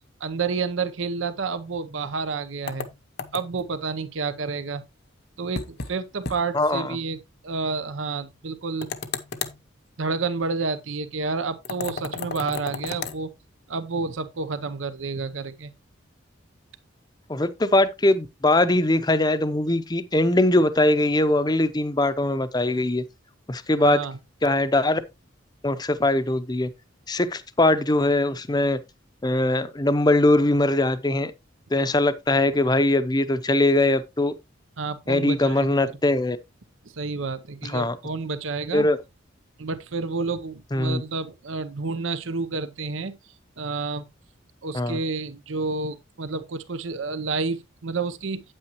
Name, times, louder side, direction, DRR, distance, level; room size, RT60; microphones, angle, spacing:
voice 1, 0.2-2.9 3.3-4.8 5.4-8.9 10.0-13.3 13.7-15.7 23.8-24.2 34.8-35.7 37.0-38.9 39.6-43.2 43.6-44.1 44.6-48.4, right 4 dB, 80° right, 0.8 m, -29 dB
sound 1, 2.7-3.7 5.5-5.9 6.2-6.4 6.7-6.8 8.8-9.6 11.6-13.2, left 5 dB, 55° left, 0.8 m, -33 dB
voice 2, 6.5-7.0 17.3-23.0 23.5-24.0 24.4-25.0 25.6-26.7 27.1-28.8 29.2-31.3 31.7-34.3 35.1-36.4 37.6-38.0 38.7-39.0 40.7-41.0 44.7-45.0, left 2 dB, 20° left, 0.6 m, -21 dB
8.7 x 8.7 x 3.0 m
head